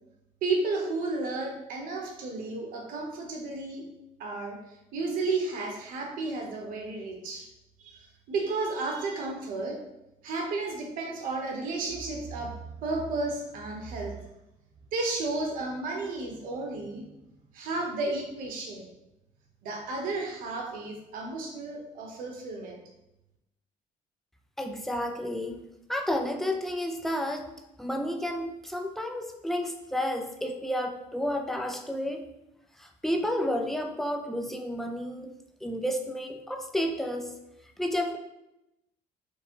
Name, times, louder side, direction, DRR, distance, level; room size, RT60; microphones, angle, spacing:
voice 1, 0.4-3.8 4.2-4.6 4.9-7.5 7.8-9.8 10.2-14.1 14.9-17.1 17.5-18.9 19.6-22.8, right 3 dB, 70° right, 1 dB, 1.1 m, -32 dB
voice 2, 24.6-27.5 27.8-32.3 32.8-35.3 35.6-37.3 37.8-38.2, equal, ahead, 3 dB, 0.4 m, -31 dB
4.7 x 2.2 x 4.6 m, 0.91 s
cardioid pair, 145°, 15 cm